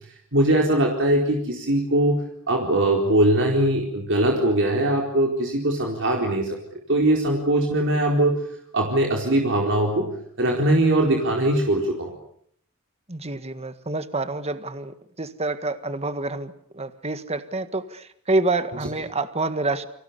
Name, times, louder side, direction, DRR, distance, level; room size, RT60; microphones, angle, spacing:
voice 1, 0.3-2.2 2.5-6.6 6.9-8.4 8.7-10.1 10.4-12.1, right 1 dB, 60° right, 0 dB, 4.3 m, -21 dB
voice 2, 13.1-19.9, right 2 dB, 30° right, 11 dB, 1.7 m, -27 dB
30.0 x 25.0 x 7.0 m, 0.66 s
head